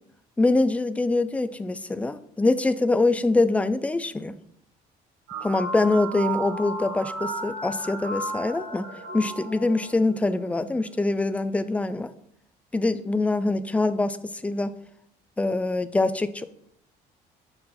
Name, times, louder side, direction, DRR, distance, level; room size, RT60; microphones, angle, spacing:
voice 1, 0.4-4.3 5.4-8.9 9.1-12.1 12.7-14.7 15.4-16.5, left 2 dB, 10° left, 11 dB, 0.4 m, -24 dB
sound 1, 5.3-10.3, right 2 dB, 90° right, 2.1 m, -34 dB
6.8 x 2.5 x 5.5 m, 0.69 s
cardioid pair, 110°, 17 cm